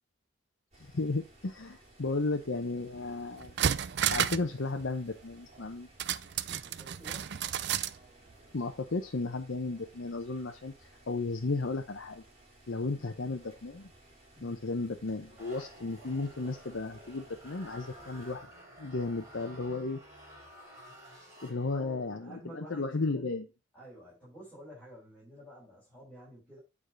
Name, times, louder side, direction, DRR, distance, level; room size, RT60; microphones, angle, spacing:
sound 1, 0.7-18.3, right 1 dB, 30° right, 3.8 m, -58 dB
voice 1, 0.8-3.5 4.1-5.9 8.5-12.2 12.7-13.9 14.4-18.5 18.8-20.0 21.4-23.5, left 3 dB, 65° left, 3 dB, 0.8 m, -34 dB
sound 2, 3.0-3.1 3.4-4.5 4.8-4.9 6.0-8.0 8.3-8.4, right 9 dB, 55° right, 0.5 m, -31 dB
voice 2, 6.5-7.3 12.9-13.1 14.3-14.6 21.6-23.2 23.7-26.6, equal, 5° left, -9 dB, 4.9 m, -51 dB
sound 3, 15.4-22.0, equal, 15° right, 4.5 m, -52 dB
9.0 x 4.9 x 4.9 m, 0.28 s
head